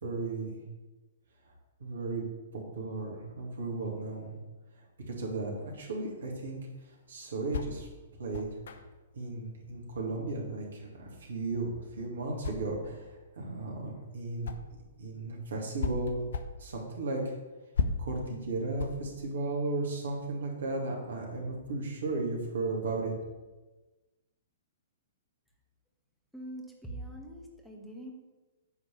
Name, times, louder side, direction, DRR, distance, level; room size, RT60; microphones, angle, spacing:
voice 1, 0.0-0.6 1.8-2.2 2.5-4.4 5.1-6.6 7.1-8.6 9.2-14.5 15.0-16.3 16.6-17.2 18.0-23.1, right 3 dB, 70° right, -1 dB, 2.3 m, -35 dB
sound 1, 6.4-15.0 15.3-20.1, left 5 dB, 65° left, 0.7 m, -38 dB
voice 2, 26.3-28.1, right 1 dB, ahead, -1 dB, 1.7 m, -43 dB
9.5 x 4.0 x 7.0 m, 1.2 s
figure-of-eight pair, 115°, 0 cm